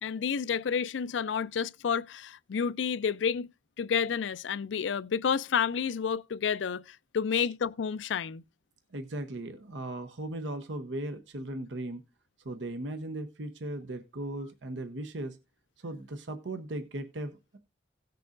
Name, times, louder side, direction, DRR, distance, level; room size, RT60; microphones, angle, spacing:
voice 1, 0.0-3.5 3.8-8.4, left 6 dB, 85° left, 0.4 m, -30 dB
voice 2, 8.9-12.0 12.4-15.4 15.8-17.6, right 1 dB, 80° right, 0.9 m, -37 dB
17.5 x 6.7 x 2.5 m
head